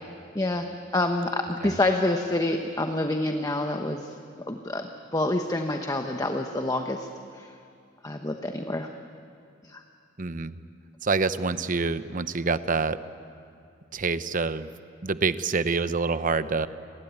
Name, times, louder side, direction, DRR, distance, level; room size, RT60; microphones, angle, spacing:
voice 1, 0.3-0.7 0.9-4.1 4.5-4.9 5.1-7.1 7.4-7.5 8.0-8.9 9.7-9.8, left 2 dB, 20° left, 5 dB, 1.1 m, -27 dB
voice 2, 10.2-10.6 11.0-13.0 13.9-14.7 15.0-16.7, right 4 dB, 45° right, 13 dB, 0.8 m, -26 dB
30.0 x 21.0 x 9.5 m, 2.4 s
head